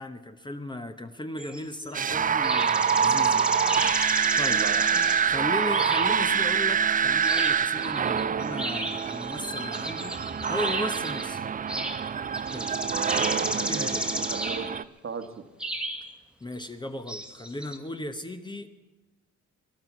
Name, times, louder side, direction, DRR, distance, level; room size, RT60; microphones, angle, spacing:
voice 1, 0.0-3.5 4.4-4.6 5.2-10.2 10.5-11.5 12.5-12.7 13.5-14.0 16.4-18.7, left 1 dB, 15° left, 7 dB, 0.9 m, -36 dB
sound 1, 1.4-2.2 2.4-5.4 5.7-6.5 7.0-11.3 11.7-14.8 15.6-16.1 17.1-17.8, right 1 dB, 5° right, 1.4 m, -33 dB
sound 2, 1.9-14.8, right 7 dB, 30° right, 0.4 m, -26 dB
voice 2, 4.4-5.1 6.3-6.4 12.9-14.8 15.0-15.4, right 5 dB, 45° right, 7 dB, 1.4 m, -36 dB
21.5 x 11.0 x 6.0 m, 1.2 s
cardioid pair, 90°, 30 cm